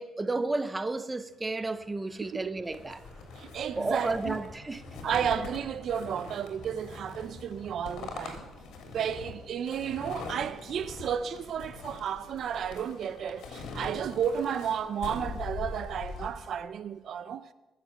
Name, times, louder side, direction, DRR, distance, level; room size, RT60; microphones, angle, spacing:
voice 1, 0.0-3.0 3.8-4.8, right 2 dB, 15° right, 0.7 m, -32 dB
sound 1, 1.2-9.2, left 1 dB, 5° left, 5.7 m, -51 dB
sound 2, 2.7-16.3, left 4 dB, 75° left, 3.4 m, -42 dB
voice 2, 3.4-4.4 5.0-8.4 8.9-17.5, right 8 dB, 55° right, 0.5 m, -32 dB
sound 3, 6.6-16.6, left 3 dB, 55° left, 2.5 m, -57 dB
22.5 x 7.5 x 7.0 m
cardioid pair, 145°, 0 cm